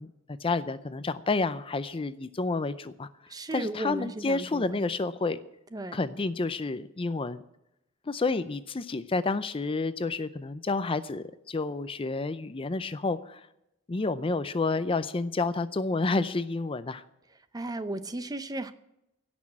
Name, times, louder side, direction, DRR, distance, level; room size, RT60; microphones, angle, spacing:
voice 1, 0.0-3.1 3.5-5.4 5.9-7.4 8.1-13.5 13.9-17.0, left 3 dB, 30° left, 13 dB, 0.5 m, -30 dB
voice 2, 3.3-4.8 5.7-6.0 17.5-18.7, right 2 dB, 20° right, 12 dB, 0.7 m, -35 dB
17.0 x 6.2 x 8.6 m, 0.84 s
head